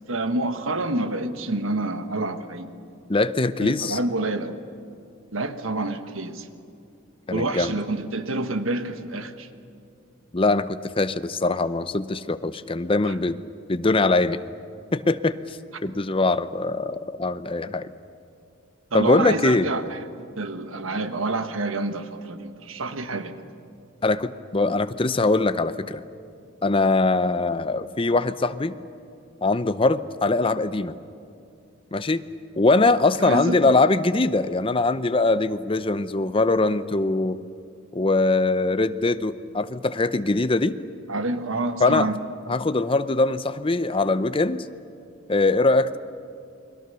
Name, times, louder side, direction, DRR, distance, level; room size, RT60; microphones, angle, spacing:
voice 1, 0.1-2.7 3.6-4.5 5.3-6.5 7.3-9.5 13.1-13.2 18.9-20.1 20.4-23.3 33.2-33.8 41.1-42.2, right 2 dB, 85° right, 9 dB, 1.3 m, -28 dB
voice 2, 3.1-4.0 7.3-7.7 10.3-13.4 13.7-14.4 14.9-17.9 18.9-19.7 24.0-26.0 26.6-28.7 29.4-31.0 31.9-32.2 32.6-37.4 37.9-40.8 41.8-42.1 42.5-44.7 45.3-46.0, left 3 dB, 25° left, 12 dB, 0.6 m, -22 dB
29.5 x 21.5 x 6.9 m, 2.5 s
head